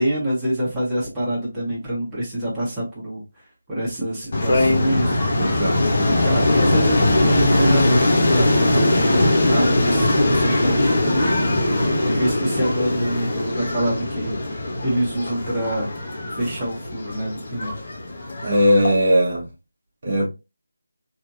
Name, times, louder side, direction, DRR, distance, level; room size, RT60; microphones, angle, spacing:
voice 1, 0.0-3.2 3.7-5.1 6.1-11.4 12.0-14.4 14.8-15.9 16.4-17.7, right 1 dB, 10° right, 1.2 m, -26 dB
sound 1, 4.3-18.9, left 1 dB, 40° left, 1.0 m, -20 dB
voice 2, 5.4-6.1 18.4-19.4 20.0-20.3, equal, 40° right, 1.0 m, -19 dB
3.5 x 2.8 x 2.4 m
figure-of-eight pair, 160°, 0 cm